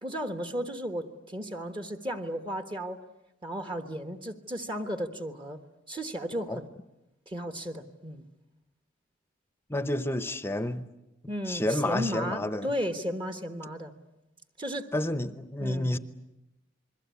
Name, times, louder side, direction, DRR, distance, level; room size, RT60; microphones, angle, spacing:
voice 1, 0.0-3.0 3.4-5.6 5.9-6.7 7.3-8.2 11.3-13.9 14.6-14.9 15.6-16.0, equal, 25° right, 1.3 m, -34 dB
voice 2, 9.7-10.9 11.5-12.7 14.9-16.0, left 1 dB, 10° left, 0.8 m, -29 dB
28.0 x 22.0 x 8.3 m
head